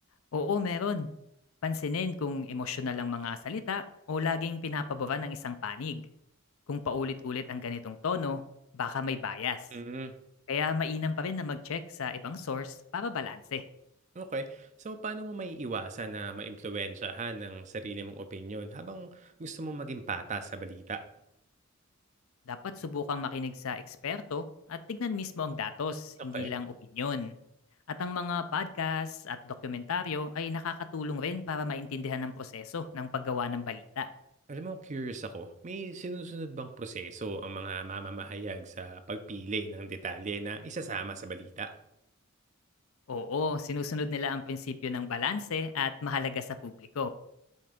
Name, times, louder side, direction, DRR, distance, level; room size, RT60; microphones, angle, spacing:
voice 1, 0.3-1.1 1.6-6.0 6.7-8.4 8.7-9.6 10.5-13.6 22.5-27.3 27.9-34.1 43.1-47.1, left 5 dB, 75° left, 11 dB, 0.5 m, -33 dB
voice 2, 9.7-10.1 14.1-21.0 26.3-26.5 34.5-41.7, right 3 dB, 35° right, 9 dB, 0.5 m, -38 dB
5.4 x 3.4 x 5.1 m, 0.80 s
head